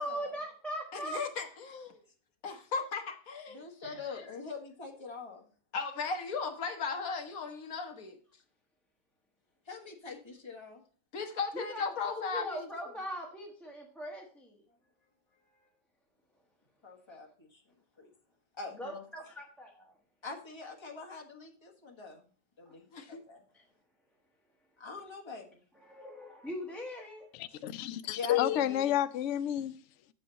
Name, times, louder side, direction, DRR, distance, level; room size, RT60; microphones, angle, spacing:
voice 1, 0.0-1.2 11.5-14.6 15.3-15.7 17.1-17.2 18.8-19.9 22.6-22.7 23.5-23.6 25.7-27.3, equal, ahead, 1.0 m, -41 dB
voice 2, 0.9-2.0 2.4-3.6 4.1-4.2 5.7-8.2 11.1-12.6 18.8-19.0 22.9-23.2, left 5 dB, 60° left, 1.4 m, -36 dB
voice 3, 3.5-5.4 9.7-10.8 16.8-17.6 18.0-18.1 18.6-18.8 20.2-22.3 22.6-23.4 24.8-25.6 27.5-27.6 28.1-28.9, left 4 dB, 15° left, 1.4 m, -44 dB
voice 4, 27.3-29.7, left 12 dB, 85° left, 0.6 m, -30 dB
7.7 x 7.3 x 4.0 m
omnidirectional pair, 1.8 m